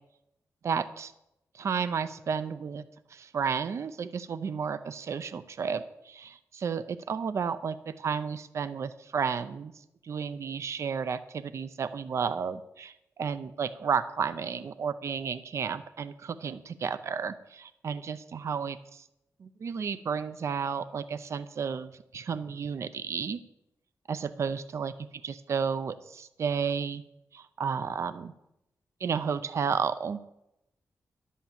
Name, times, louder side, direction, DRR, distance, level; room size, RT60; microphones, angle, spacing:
voice 1, 0.6-1.1 1.5-2.8 3.1-9.7 10.0-19.0 19.4-23.4 24.1-24.9 25.2-27.0 27.3-28.3 29.0-30.2, right 6 dB, 50° right, 13 dB, 0.5 m, -32 dB
11.5 x 8.4 x 7.3 m, 0.87 s
wide cardioid pair, 175°, 6 cm